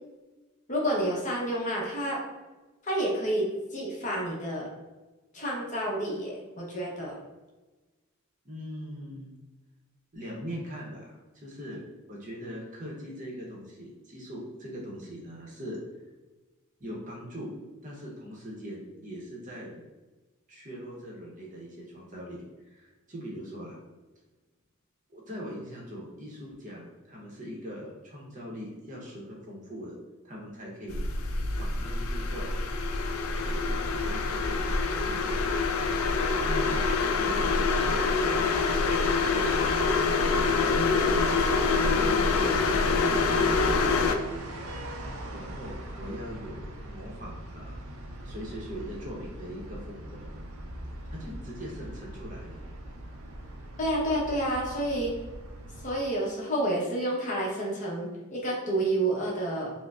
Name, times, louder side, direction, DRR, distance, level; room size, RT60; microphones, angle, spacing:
voice 1, 0.7-2.2 2.8-4.7 5.3-7.2 53.8-55.2 55.8-59.7, right 1 dB, 35° left, -3 dB, 0.8 m, -29 dB
voice 2, 8.4-9.3 10.1-11.8 12.1-15.8 16.8-17.5 17.8-19.8 20.5-23.8 25.1-29.9 30.2-31.0 31.6-32.6 33.4-35.5 36.4-36.9 37.1-39.6 40.3-42.5 42.8-44.2 45.3-47.8 48.2-50.3 51.1-52.6, equal, 35° right, -2 dB, 0.7 m, -41 dB
sound 1, 30.9-44.1, left 4 dB, 70° left, 0.4 m, -26 dB
sound 2, 41.3-55.9, right 1 dB, 75° right, 0.5 m, -41 dB
4.7 x 2.0 x 2.3 m, 1.2 s
head